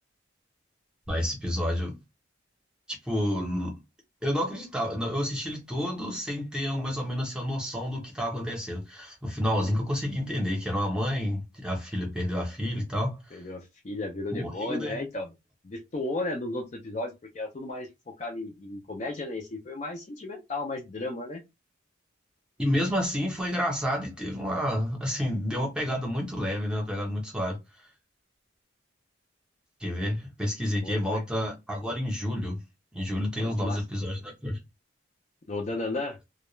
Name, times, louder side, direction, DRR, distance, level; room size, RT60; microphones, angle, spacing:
voice 1, 1.1-1.9 2.9-3.8 4.2-13.4 14.3-15.0 22.6-27.6 29.8-32.6 32.9-34.6, equal, 5° right, 0.7 m, -29 dB
voice 2, 13.3-15.3 15.6-17.9 18.2-21.4 30.8-31.2 33.4-33.8 35.5-36.2, left 2 dB, 35° left, 0.4 m, -34 dB
2.3 x 2.1 x 3.0 m
head